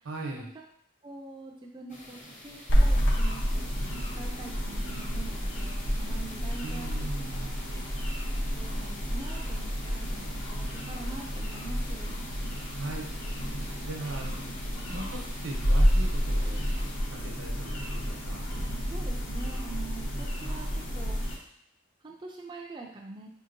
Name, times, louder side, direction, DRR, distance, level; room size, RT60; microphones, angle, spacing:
voice 1, 0.0-0.5 6.6-7.6 12.8-13.1 13.9-14.4 14.9-16.6 17.1-18.5 20.1-20.3, right 2 dB, 80° right, 1 dB, 0.8 m, -39 dB
voice 2, 1.0-2.2 2.4-3.6 4.1-7.8 8.5-12.2 18.7-21.2 22.0-23.3, right 3 dB, 25° right, 0 dB, 0.3 m, -44 dB
sound 1, 1.9-17.0, left 1 dB, 35° left, 0.8 m, -49 dB
sound 2, 2.7-21.3, equal, 65° left, 0.8 m, -30 dB
4.9 x 2.8 x 2.6 m, 0.69 s
head